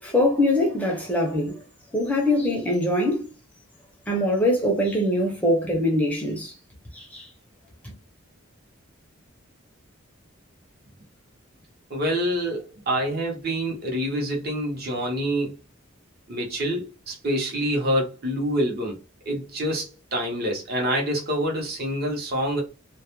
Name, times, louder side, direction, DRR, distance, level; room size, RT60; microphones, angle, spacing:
voice 1, 0.0-1.6 1.9-3.3 4.1-6.5 6.9-7.3 7.8-7.9, left 1 dB, 5° left, 0.5 m, -23 dB
voice 2, 11.9-15.6 16.3-19.0 19.3-22.6, equal, 50° right, 0.7 m, -26 dB
2.2 x 2.1 x 2.9 m
head